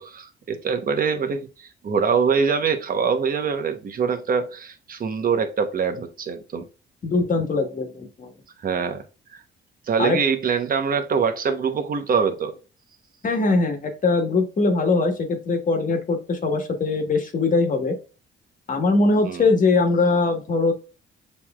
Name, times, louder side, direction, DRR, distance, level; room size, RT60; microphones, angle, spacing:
voice 1, 0.0-6.7 8.6-9.0 9.3-9.4 9.9-12.6 19.2-19.5, right 6 dB, 45° right, 0.9 m, -24 dB
voice 2, 7.0-8.3 10.0-10.2 13.2-17.9 18.7-20.7, left 3 dB, 40° left, 1.3 m, -21 dB
6.9 x 3.1 x 2.3 m
cardioid pair, 90°, 20 cm